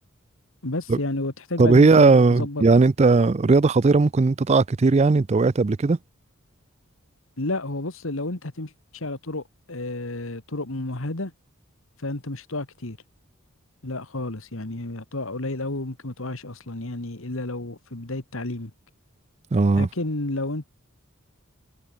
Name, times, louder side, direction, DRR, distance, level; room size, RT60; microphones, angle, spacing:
voice 1, 0.6-2.7 7.4-11.3 12.0-13.0 13.8-18.7 19.8-20.6, left 2 dB, 65° left, 2.0 m, -31 dB
voice 2, 1.6-6.0 19.5-19.9, right 3 dB, 30° right, 0.4 m, -17 dB
head